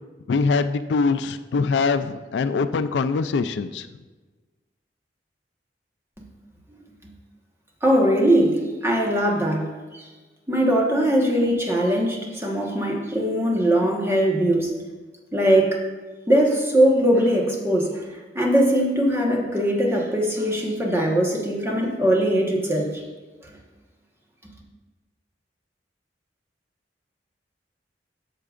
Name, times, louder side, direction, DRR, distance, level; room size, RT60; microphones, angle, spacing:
voice 1, 0.3-3.9, left 4 dB, 75° left, 11 dB, 0.4 m, -23 dB
voice 2, 7.8-10.1 10.5-14.7 15.3-15.8 16.3-23.0, right 1 dB, 15° right, -1 dB, 1.3 m, -21 dB
13.0 x 6.6 x 2.5 m, 1.3 s
head